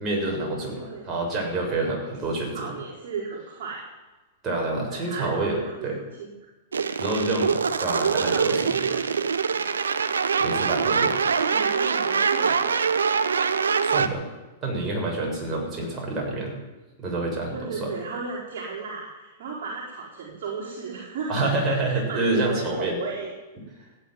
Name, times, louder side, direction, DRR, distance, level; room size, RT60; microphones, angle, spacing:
voice 1, 0.0-2.7 4.4-6.0 7.0-8.6 10.4-11.2 13.8-14.3 14.6-16.5 17.0-17.9 21.3-23.0, right 2 dB, 25° right, -1 dB, 6.8 m, -27 dB
voice 2, 0.6-1.1 2.2-3.8 4.9-6.3 8.0-9.1 10.5-10.6 11.2-12.9 15.7-15.9 17.5-23.3, right 4 dB, 55° right, -5 dB, 4.7 m, -34 dB
sound 1, 6.7-14.1, right 5 dB, 85° right, 1.0 m, -24 dB
16.0 x 9.8 x 9.4 m, 1.1 s
hypercardioid pair, 110°, 0 cm